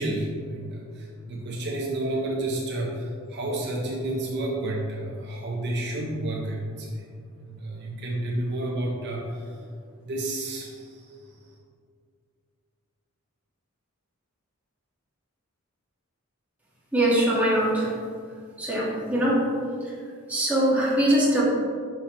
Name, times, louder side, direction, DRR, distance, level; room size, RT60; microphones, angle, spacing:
voice 1, 0.0-7.0 7.4-9.6 10.0-11.1, right 1 dB, 55° right, -2 dB, 0.7 m, -30 dB
voice 2, 16.9-17.9 18.6-19.4 20.3-21.4, right 1 dB, 5° right, -7 dB, 1.5 m, -22 dB
6.0 x 5.8 x 3.0 m, 2.2 s
head